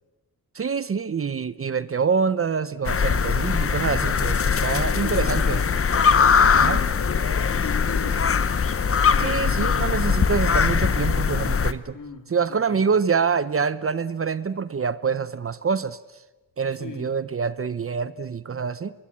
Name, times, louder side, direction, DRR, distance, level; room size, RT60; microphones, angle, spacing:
voice 1, 0.5-5.6 6.6-6.8 9.2-12.0 12.3-16.2 16.6-18.9, right 5 dB, 35° right, 0.7 m, -26 dB
sound 1, 2.9-11.7, left 6 dB, 35° left, 0.9 m, -21 dB
voice 2, 4.7-5.7 6.2-8.7 11.9-12.9 16.8-17.2, left 5 dB, 55° left, 3.5 m, -37 dB
24.5 x 22.0 x 8.7 m
wide cardioid pair, 115°, 38 cm